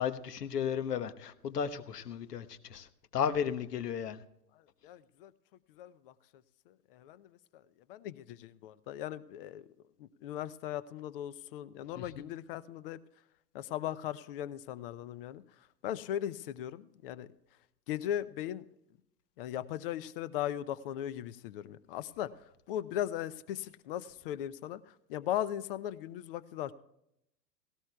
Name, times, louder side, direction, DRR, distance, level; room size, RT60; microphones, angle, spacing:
voice 1, 0.0-2.9 3.1-4.2 12.0-12.3, left 8 dB, 70° left, 12 dB, 1.2 m, -34 dB
voice 2, 4.8-5.3 5.8-6.1 6.7-7.6 7.9-9.6 10.0-13.0 13.5-15.4 15.8-17.3 17.9-18.6 19.4-22.3 22.7-26.7, left 11 dB, 35° left, 16 dB, 0.6 m, -38 dB
18.0 x 17.5 x 2.3 m, 0.81 s
figure-of-eight pair, 105°, 49 cm